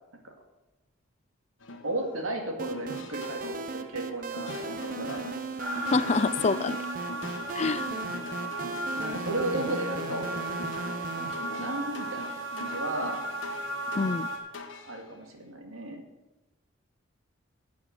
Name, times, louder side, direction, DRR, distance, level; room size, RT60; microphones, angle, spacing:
sound 1, 1.6-2.3 2.6-15.0, left 2 dB, 65° left, 1.2 m, -42 dB
voice 1, 1.8-5.2 9.0-10.3 11.1-13.2 14.8-16.0, right 1 dB, 85° right, 3 dB, 2.2 m, -34 dB
sound 2, 2.6-11.3, right 4 dB, 40° right, 0.7 m, -37 dB
sound 3, 5.6-14.4, right 1 dB, 70° right, 2.5 m, -36 dB
voice 2, 5.9-6.8 7.5-7.8 14.0-14.3, left 4 dB, 30° left, 16 dB, 0.3 m, -26 dB
11.5 x 7.0 x 7.7 m, 1.1 s
head